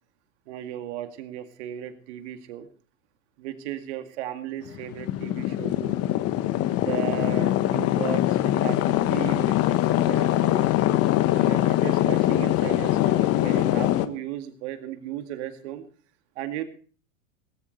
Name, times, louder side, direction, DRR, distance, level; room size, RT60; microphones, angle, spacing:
voice 1, 0.5-2.7 3.4-6.0 6.8-10.7 11.3-15.8 16.4-16.6, right 12 dB, 55° right, 7 dB, 2.2 m, -35 dB
sound 1, 4.7-14.1, left 14 dB, 35° left, 1.3 m, -23 dB
18.5 x 15.0 x 3.3 m, 0.42 s
hypercardioid pair, 95°, 40 cm